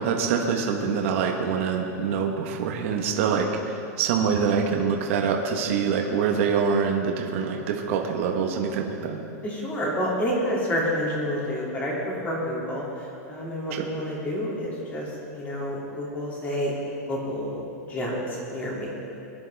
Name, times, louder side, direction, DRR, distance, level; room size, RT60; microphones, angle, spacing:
voice 1, 0.0-9.2 13.7-13.9, right 6 dB, 50° right, 2 dB, 1.4 m, -25 dB
voice 2, 9.4-11.9 12.2-16.7 17.1-17.6 17.9-18.9, equal, 15° left, -5 dB, 2.8 m, -29 dB
21.0 x 10.5 x 3.5 m, 2.7 s
supercardioid pair, 165°, 9 cm